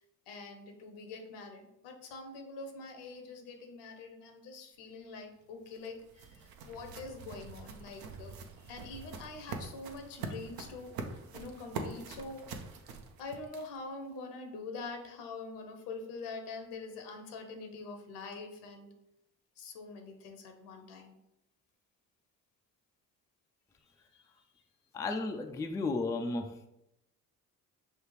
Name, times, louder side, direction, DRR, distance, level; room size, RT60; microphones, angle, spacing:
voice 1, 0.0-12.4 13.2-18.9 19.5-21.2 23.8-24.7, left 3 dB, 65° left, 4 dB, 0.9 m, -45 dB
sound 1, 5.4-13.9, right 4 dB, 55° right, 0.7 m, -44 dB
voice 2, 24.9-26.7, left 3 dB, 10° left, 4 dB, 0.4 m, -34 dB
6.1 x 2.3 x 3.2 m, 0.84 s
hypercardioid pair, 50°, 44 cm